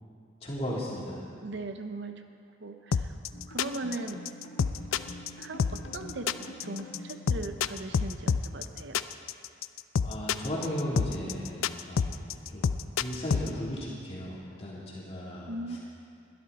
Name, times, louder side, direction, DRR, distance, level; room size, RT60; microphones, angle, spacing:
voice 1, 0.4-1.2 10.0-12.7 13.0-15.8, equal, 30° left, -6 dB, 3.3 m, -36 dB
voice 2, 1.3-2.2 2.6-3.2 3.5-4.3 5.4-9.0 15.5-15.8, right 2 dB, 60° right, 7 dB, 0.8 m, -39 dB
sound 1, 2.9-13.5, left 6 dB, 85° left, 0.4 m, -28 dB
sound 2, 3.3-8.1, left 1 dB, 65° left, 1.4 m, -47 dB
21.5 x 12.5 x 4.2 m, 2.4 s
head